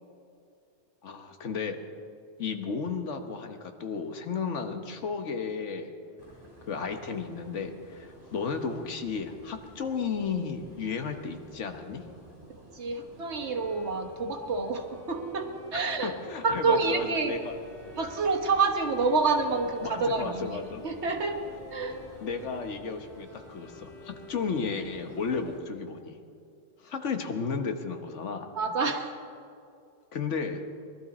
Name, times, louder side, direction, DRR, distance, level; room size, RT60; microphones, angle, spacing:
voice 1, 1.0-1.8 2.4-5.9 6.6-12.0 16.0-17.5 19.8-20.8 22.2-26.2 26.8-28.5 30.1-30.7, left 5 dB, 80° left, 6 dB, 1.4 m, -33 dB
sound 1, 6.2-25.6, right 1 dB, 35° right, 4.7 m, -52 dB
voice 2, 12.7-16.1 16.4-17.3 18.0-21.4 21.7-22.0 28.5-29.1, right 4 dB, 65° right, 4 dB, 1.6 m, -28 dB
Bowed string instrument, 13.3-25.2, left 1 dB, ahead, 2.3 m, -51 dB
sound 2, 16.4-22.7, left 4 dB, 30° left, 2.4 m, -52 dB
21.0 x 12.5 x 4.2 m, 2.4 s
omnidirectional pair, 1.2 m